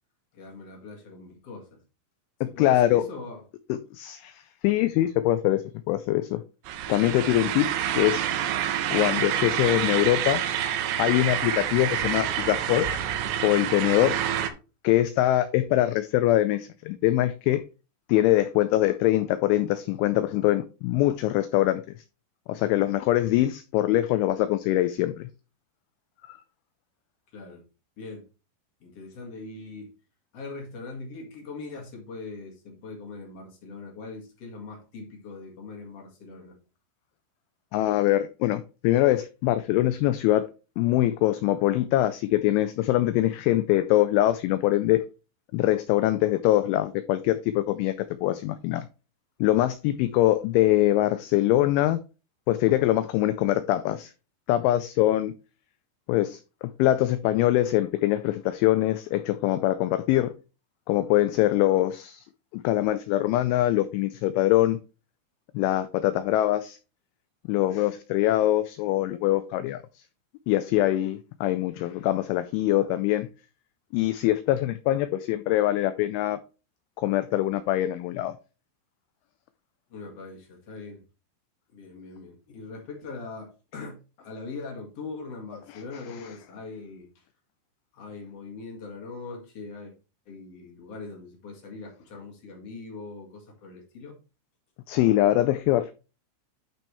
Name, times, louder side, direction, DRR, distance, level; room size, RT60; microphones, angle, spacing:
voice 1, 0.3-1.8 2.4-3.4 27.3-27.6 28.0-28.3 28.8-29.9 30.3-36.6 79.9-81.0 81.7-87.2 87.9-89.9 90.2-94.2, left 3 dB, 60° left, 1.6 m, -41 dB
voice 2, 2.4-3.0 3.7-6.4 6.9-7.7 7.9-8.3 8.9-10.4 11.0-12.9 13.4-14.2 14.8-17.6 18.1-21.8 22.5-25.3 26.3-26.4 37.7-40.5 40.8-45.0 45.5-48.9 49.4-52.0 52.5-54.1 54.5-55.3 56.1-60.3 60.9-62.2 62.5-64.8 65.5-66.8 67.5-69.8 70.5-73.3 73.9-76.4 77.0-78.3 94.9-95.9, left 14 dB, 90° left, 2.7 m, -23 dB
sound 1, 6.7-14.5, right 10 dB, 85° right, 3.6 m, -28 dB
12.0 x 4.4 x 3.2 m
omnidirectional pair, 5.9 m